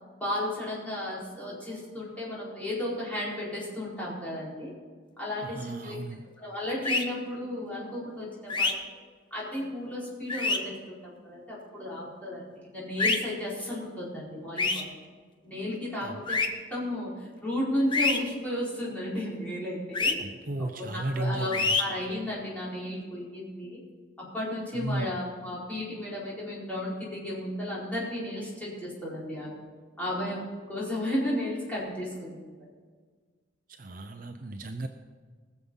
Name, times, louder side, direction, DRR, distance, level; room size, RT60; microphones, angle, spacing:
voice 1, 0.2-4.7 5.2-6.0 6.4-9.0 9.3-11.0 11.2-14.9 15.4-16.4 16.7-20.1 20.6-23.8 24.2-29.5 30.0-32.7, left 1 dB, 10° left, -7 dB, 4.5 m, -34 dB
voice 2, 5.4-6.2 16.0-16.2 20.2-21.8 24.7-25.1 33.8-34.9, right 2 dB, 45° right, 6 dB, 0.6 m, -34 dB
sound 1, 6.8-7.0 8.5-8.7 10.3-10.6 13.0-13.2 14.6-14.8 16.3-16.5 17.9-18.2 19.9-20.1 21.5-21.8, left 3 dB, 25° left, 0.9 m, -25 dB
19.5 x 7.3 x 5.5 m, 1.5 s
head